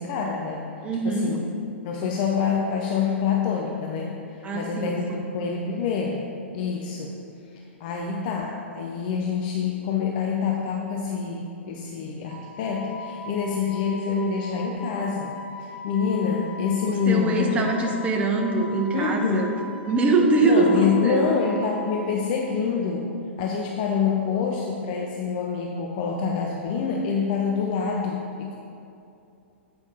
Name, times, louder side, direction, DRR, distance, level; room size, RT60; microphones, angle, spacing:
voice 1, 0.0-0.6 1.0-1.4 1.8-6.3 6.5-7.2 7.5-17.7 18.9-19.4 20.4-23.1 23.4-28.6, left 6 dB, 40° left, 0 dB, 0.6 m, -26 dB
voice 2, 0.8-1.4 4.4-5.2 16.9-19.5 19.9-21.3, right 3 dB, 20° right, 1 dB, 0.9 m, -23 dB
Wind instrument woodwind instrument, 12.2-22.1, left 3 dB, 80° right, 1.3 m, -40 dB
8.3 x 5.2 x 3.9 m, 2.6 s
figure-of-eight pair, 105°, 7 cm